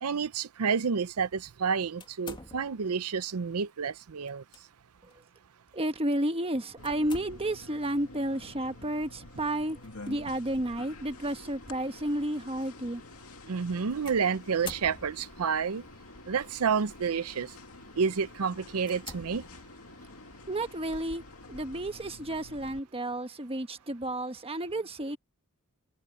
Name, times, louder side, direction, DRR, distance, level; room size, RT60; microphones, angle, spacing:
voice 1, 0.0-4.4 13.5-15.8 16.3-17.5 18.0-19.4, right 6 dB, 85° right, 0.6 m, -29 dB
sound 1, 2.0-3.0 4.3-4.6 5.1-5.2 6.8-7.7 9.8-10.1 10.9-11.0 14.1-15.5 16.4-16.8 17.4-17.6 18.1-18.2 18.8-20.0, left 4 dB, 20° left, 2.2 m, -47 dB
voice 2, 5.7-9.8 10.1-13.0 20.5-21.2 21.5-25.2, right 1 dB, 25° right, 1.4 m, -32 dB
sound 2, 6.8-22.8, left 2 dB, 75° left, 2.4 m, -49 dB
head